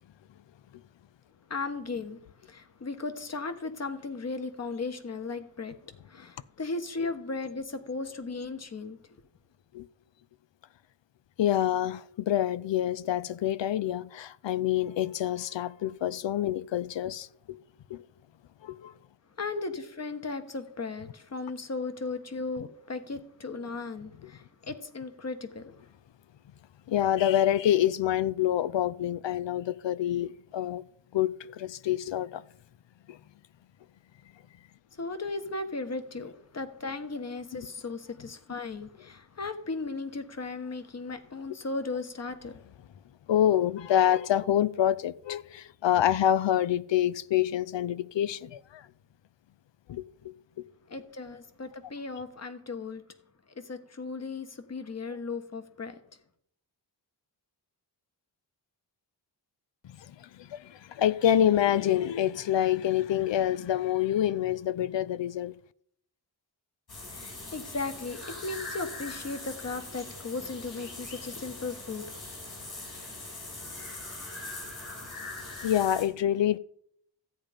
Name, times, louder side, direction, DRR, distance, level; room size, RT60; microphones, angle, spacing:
voice 1, 1.5-2.2 2.5-9.0 19.4-25.7 34.9-42.6 50.9-53.0 53.6-56.0 67.1-72.2, left 3 dB, 35° left, 1.2 m, -36 dB
voice 2, 11.4-17.6 17.9-18.0 18.6-18.9 26.9-30.8 31.1-32.4 33.1-33.2 43.3-48.8 49.9-50.3 59.8-65.5 75.6-76.6, left 11 dB, 80° left, 0.6 m, -27 dB
sound 1, 66.9-76.0, left 2 dB, 55° left, 5.6 m, -41 dB
14.0 x 8.9 x 5.1 m
wide cardioid pair, 150°, 43 cm